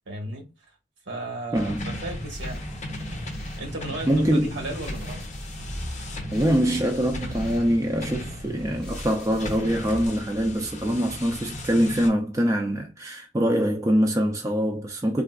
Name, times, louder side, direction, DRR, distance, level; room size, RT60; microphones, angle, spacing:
voice 1, 0.1-0.5 1.0-2.6 3.6-5.2, right 2 dB, 75° right, 1.2 m, -35 dB
sound 1, 1.5-12.1, left 1 dB, 40° left, 0.8 m, -37 dB
voice 2, 1.5-2.0 4.1-4.5 6.3-15.2, equal, 15° right, 0.4 m, -24 dB
sound 2, 2.1-10.1, equal, 5° left, 1.2 m, -38 dB
3.5 x 2.4 x 2.3 m
head